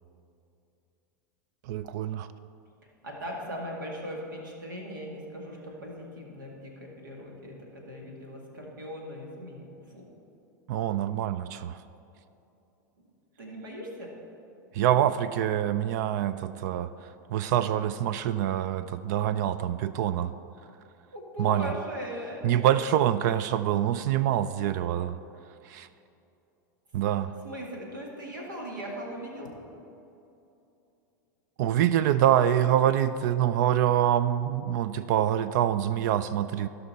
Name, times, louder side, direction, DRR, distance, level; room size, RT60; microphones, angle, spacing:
voice 1, 1.7-2.3 10.7-11.8 14.7-16.9 17.3-20.3 21.4-21.7 22.4-25.2 25.7-25.9 26.9-27.3 31.6-36.7, right 11 dB, 60° right, 14 dB, 0.4 m, -25 dB
voice 2, 3.0-10.0 13.4-14.1 21.1-22.8 23.1-23.2 27.1-29.5, equal, 90° right, -1 dB, 2.1 m, -39 dB
16.5 x 5.6 x 4.2 m, 2.8 s
hypercardioid pair, 100°, 10 cm